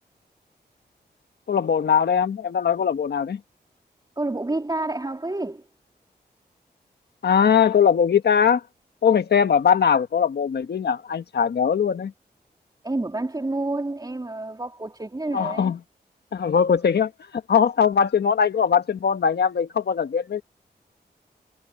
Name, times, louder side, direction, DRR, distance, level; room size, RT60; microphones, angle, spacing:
voice 1, 1.5-3.4 7.2-8.6 9.0-12.1 15.3-15.8 16.3-17.1 17.5-20.4, left 7 dB, 70° left, 1.5 m, -20 dB
voice 2, 4.2-5.6 12.8-15.7 16.7-16.8, right 2 dB, 25° right, 3.2 m, -29 dB
cardioid pair, 55°, 17 cm